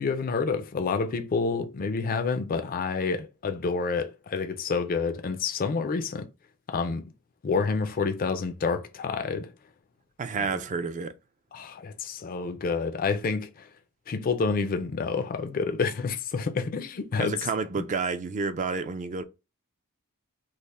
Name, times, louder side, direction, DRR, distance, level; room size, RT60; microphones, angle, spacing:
voice 1, 0.0-6.3 6.7-7.1 7.4-9.5 10.4-10.5 11.5-13.7 14.1-17.4 17.8-17.9, left 4 dB, 40° left, 0.4 m, -28 dB
voice 2, 10.2-11.1 17.2-19.2, right 4 dB, 35° right, 0.4 m, -30 dB
3.2 x 2.1 x 4.0 m
head